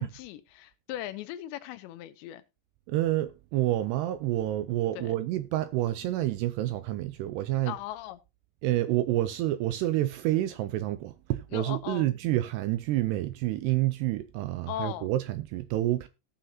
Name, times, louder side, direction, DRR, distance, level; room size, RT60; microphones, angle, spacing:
voice 1, 0.0-2.4 5.0-5.1 7.6-8.2 11.5-12.1 14.7-15.1, left 13 dB, 80° left, 2.8 m, -38 dB
voice 2, 2.9-7.8 8.6-16.1, right 15 dB, 80° right, 2.5 m, -28 dB
18.5 x 6.7 x 2.8 m
omnidirectional pair, 5.3 m